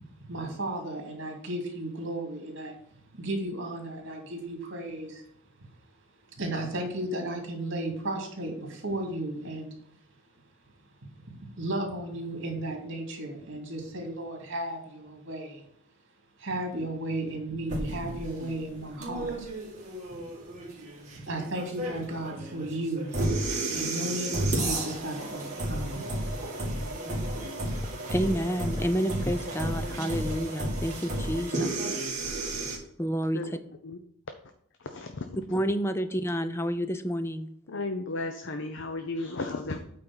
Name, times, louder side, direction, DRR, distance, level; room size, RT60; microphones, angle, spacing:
voice 1, 0.3-2.8 3.2-5.2 6.3-9.7 11.6-15.7 16.4-19.5 21.1-23.1 23.7-26.1, right 1 dB, 60° right, 1 dB, 2.6 m, -34 dB
sound 1, 17.7-32.8, right 1 dB, 35° right, 2.3 m, -32 dB
voice 2, 28.1-31.7 33.0-33.6 35.5-37.5, equal, 10° left, 10 dB, 0.5 m, -29 dB
voice 3, 34.8-35.2 37.7-39.8, left 2 dB, 60° left, 6 dB, 0.7 m, -34 dB
8.7 x 4.3 x 6.1 m, 0.73 s
head